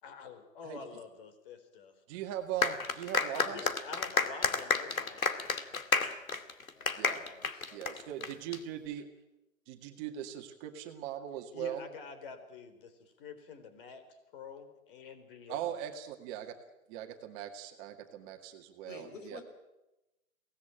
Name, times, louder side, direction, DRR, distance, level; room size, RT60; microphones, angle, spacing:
voice 1, 0.0-1.9 3.3-5.6 11.5-14.0 14.3-15.8, left 5 dB, 40° left, 9 dB, 4.1 m, -47 dB
voice 2, 2.1-3.7 7.0-7.2 7.7-9.1 9.7-11.8 15.5-16.5 16.9-19.4, right 10 dB, 25° right, 5 dB, 2.0 m, -40 dB
sound 1, 2.6-8.6, left 4 dB, 90° left, 2.4 m, -31 dB
voice 3, 6.8-8.2 18.8-19.4, left 4 dB, 65° left, 6 dB, 6.2 m, -51 dB
24.0 x 18.0 x 9.0 m, 0.97 s
hypercardioid pair, 140°, 40 cm